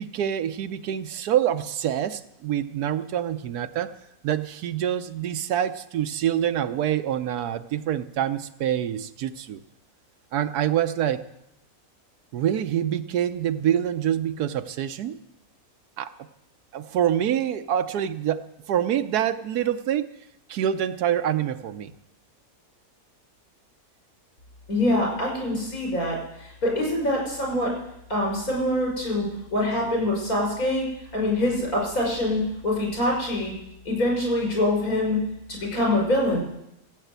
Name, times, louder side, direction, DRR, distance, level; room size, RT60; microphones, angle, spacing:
voice 1, 0.0-3.9 4.2-9.6 10.3-11.2 12.3-15.2 16.0-16.1 16.7-20.1 20.5-21.9, right 10 dB, 80° right, 11 dB, 1.3 m, -26 dB
voice 2, 24.7-27.7 28.1-30.9 31.1-33.5 33.8-35.2 35.5-36.4, left 1 dB, 65° left, -2 dB, 6.6 m, -24 dB
16.0 x 8.4 x 8.1 m, 0.83 s
omnidirectional pair, 1.6 m